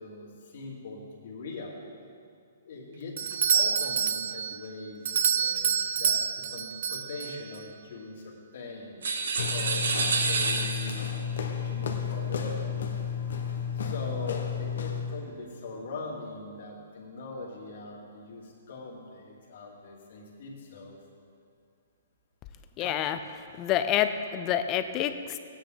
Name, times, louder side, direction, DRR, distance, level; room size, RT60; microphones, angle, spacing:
voice 1, 0.0-1.8 2.6-9.0 9.5-12.8 13.7-21.0 22.8-23.0, left 3 dB, 50° left, -3 dB, 2.6 m, -41 dB
Doorbell, 3.2-7.6, right 7 dB, 55° right, 0.4 m, -28 dB
sound 1, 9.0-11.2, right 4 dB, 80° right, 1.5 m, -28 dB
sound 2, 9.4-15.2, left 7 dB, 70° left, 1.3 m, -32 dB
voice 2, 22.8-23.2 23.6-25.4, left 10 dB, 20° left, 9 dB, 0.4 m, -27 dB
16.5 x 9.8 x 3.9 m, 2.3 s
hypercardioid pair, 170°, 0 cm